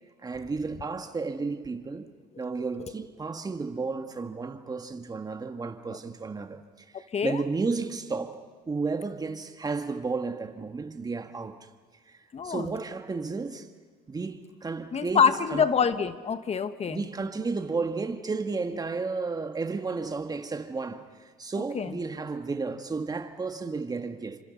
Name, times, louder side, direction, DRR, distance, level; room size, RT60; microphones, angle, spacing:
voice 1, 0.2-2.1 2.4-6.6 6.9-11.7 12.1-12.2 12.4-13.7 14.1-15.7 16.9-24.4, right 4 dB, 20° right, 1.8 m, -33 dB
voice 2, 14.9-17.0 21.7-21.8, left 6 dB, 40° left, 1.3 m, -25 dB
30.0 x 26.0 x 5.7 m
cardioid pair, 110°, 17 cm